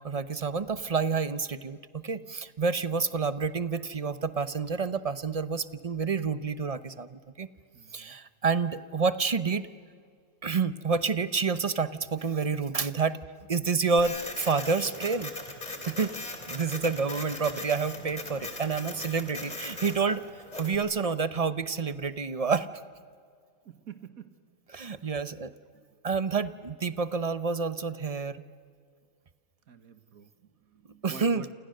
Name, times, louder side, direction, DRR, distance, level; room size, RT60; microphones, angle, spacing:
voice 1, 0.0-7.5 7.9-9.7 10.4-13.2 13.5-15.3 15.9-16.1 16.5-20.2 20.6-22.7 24.7-25.5 26.0-28.4 31.0-31.5, right 5 dB, 35° right, 13 dB, 0.7 m, -29 dB
voice 2, 2.9-3.3 7.7-8.2 18.3-18.5 19.4-19.6 23.6-24.3 29.7-31.5, right 8 dB, 80° right, 10 dB, 1.8 m, -48 dB
Printer, 14.0-20.8, left 2 dB, 30° left, 3.2 m, -39 dB
28.5 x 28.0 x 6.6 m, 2.1 s
omnidirectional pair, 1.5 m